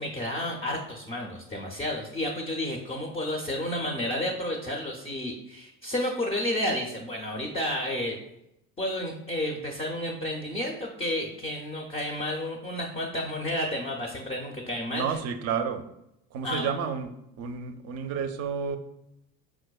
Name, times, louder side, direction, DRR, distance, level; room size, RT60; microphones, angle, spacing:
voice 1, 0.0-8.2 8.8-15.2 16.4-16.7, left 1 dB, 20° left, 1 dB, 0.4 m, -31 dB
voice 2, 14.9-15.8 16.3-17.1 17.4-18.8, right 6 dB, 50° right, 8 dB, 0.4 m, -30 dB
4.6 x 2.1 x 2.3 m, 0.83 s
supercardioid pair, 105°, 34 cm